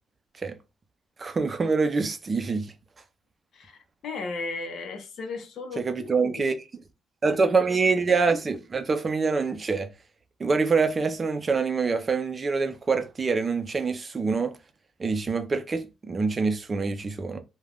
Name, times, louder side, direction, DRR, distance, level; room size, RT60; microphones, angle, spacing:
voice 1, 1.2-2.7 5.8-6.5 7.2-9.9 10.4-14.6 15.0-17.4, right 4 dB, 35° right, 0.5 m, -25 dB
voice 2, 3.5-6.6, left 3 dB, 65° left, 0.7 m, -36 dB
2.4 x 2.2 x 3.3 m
cardioid pair, 90°, 0 cm